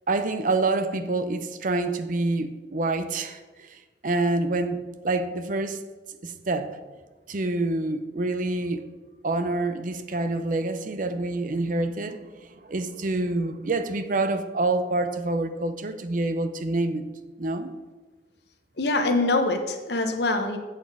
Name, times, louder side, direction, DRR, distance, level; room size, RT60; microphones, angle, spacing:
voice 1, 0.1-4.8 5.0-5.8 6.2-6.7 7.3-8.8 9.2-17.0 17.4-17.7, right 2 dB, 50° right, 10 dB, 0.6 m, -27 dB
voice 2, 18.8-20.6, left 2 dB, 65° left, 6 dB, 1.0 m, -24 dB
8.2 x 6.6 x 4.8 m, 1.3 s
head